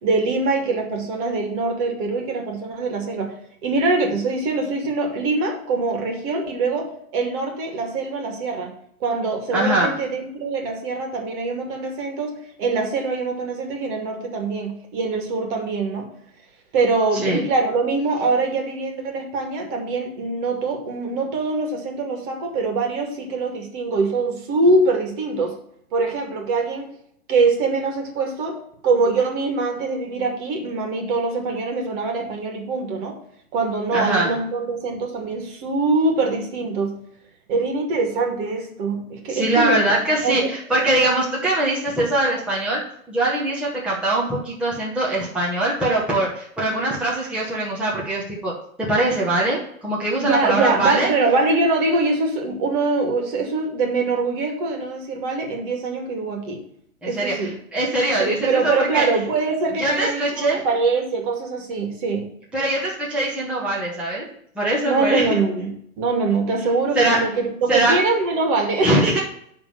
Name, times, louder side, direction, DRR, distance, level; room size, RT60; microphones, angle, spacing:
voice 1, 0.0-3.3 3.6-8.7 9.0-16.1 16.7-25.5 25.9-26.9 27.3-28.6 28.8-33.1 33.5-37.0 37.5-40.5 50.2-56.6 57.0-57.6 58.2-62.3 64.9-68.9, right 3 dB, 35° right, 3 dB, 2.2 m, -23 dB
voice 2, 9.5-9.9 17.1-17.4 33.9-34.3 39.3-51.1 57.0-59.1 59.8-60.6 62.5-64.3 64.5-65.4 66.9-67.3 67.7-68.0 68.8-69.2, right 1 dB, 5° right, -6 dB, 1.2 m, -22 dB
10.5 x 3.7 x 7.0 m, 0.68 s
hypercardioid pair, 145°, 42 cm